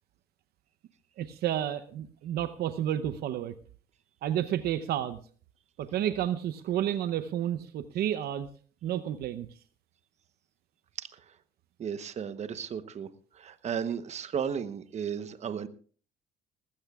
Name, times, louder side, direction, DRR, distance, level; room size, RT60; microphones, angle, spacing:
voice 1, 1.2-3.5 4.2-5.2 5.8-8.5 8.8-9.5, right 11 dB, 70° right, 12 dB, 0.8 m, -31 dB
voice 2, 11.0-11.4 11.8-13.1 13.3-15.7, right 7 dB, 40° right, 12 dB, 1.0 m, -34 dB
19.5 x 15.0 x 2.4 m, 0.43 s
cardioid pair, 110°, 17 cm